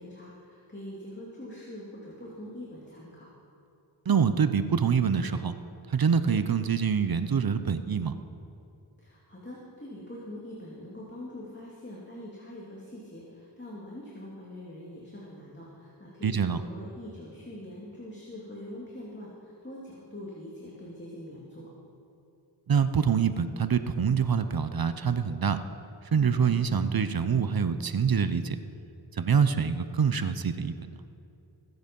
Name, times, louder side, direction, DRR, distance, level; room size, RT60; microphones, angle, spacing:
voice 1, 0.0-3.3 9.0-21.7, left 1 dB, 25° left, -6 dB, 2.7 m, -43 dB
voice 2, 4.1-5.6 5.9-8.2 16.2-16.6 22.7-25.6 26.1-28.6 29.1-30.7, right 6 dB, 50° right, 11 dB, 0.7 m, -25 dB
19.5 x 8.0 x 5.4 m, 2.7 s
cardioid pair, 50°, 45 cm